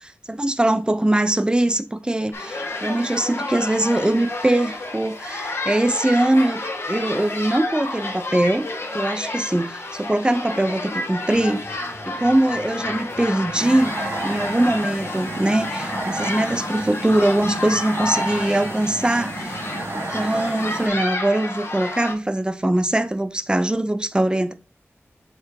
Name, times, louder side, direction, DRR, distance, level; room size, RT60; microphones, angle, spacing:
voice 1, 0.0-6.6 6.9-8.7 8.9-11.6 12.1-14.0 14.2-19.6 19.9-24.5, right 1 dB, 20° right, 0.6 m, -22 dB
sound 1, 2.3-22.1, left 2 dB, 60° left, 1.9 m, -30 dB
sound 2, 11.3-20.4, left 1 dB, 40° left, 1.7 m, -44 dB
sound 3, 13.5-20.9, right 2 dB, 60° right, 1.3 m, -32 dB
7.5 x 4.6 x 2.9 m
wide cardioid pair, 85°, 5 cm